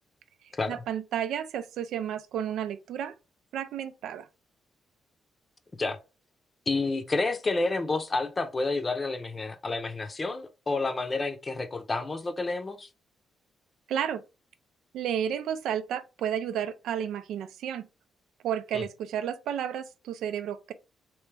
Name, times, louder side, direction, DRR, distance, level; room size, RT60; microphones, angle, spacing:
voice 1, 0.7-3.1 3.5-4.3 13.9-14.2 14.9-17.9 18.4-20.7, right 9 dB, 85° right, 0.4 m, -32 dB
voice 2, 6.7-12.9 18.7-18.8, left 3 dB, 35° left, 0.6 m, -30 dB
3.4 x 3.1 x 3.2 m
cardioid pair, 75°, 0 cm